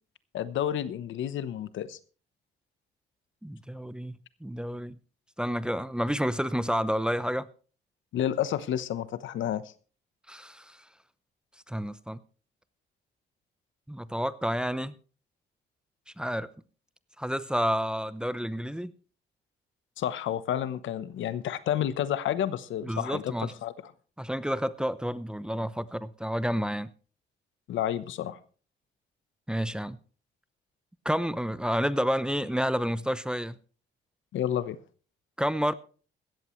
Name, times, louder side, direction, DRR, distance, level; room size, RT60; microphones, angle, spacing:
voice 1, 0.3-2.0 8.1-9.6 20.0-23.3 23.6-23.7 27.7-28.4 34.3-34.8, left 10 dB, 75° left, 1.0 m, -30 dB
voice 2, 3.4-4.2 4.4-5.0 5.4-7.5 10.3-10.8 11.7-12.2 13.9-15.0 16.2-16.5 17.2-18.9 22.8-23.5 24.2-26.9 29.5-30.0 31.0-33.5 35.4-35.7, equal, 5° right, 0.7 m, -30 dB
17.0 x 13.5 x 3.2 m
cardioid pair, 90°, 20 cm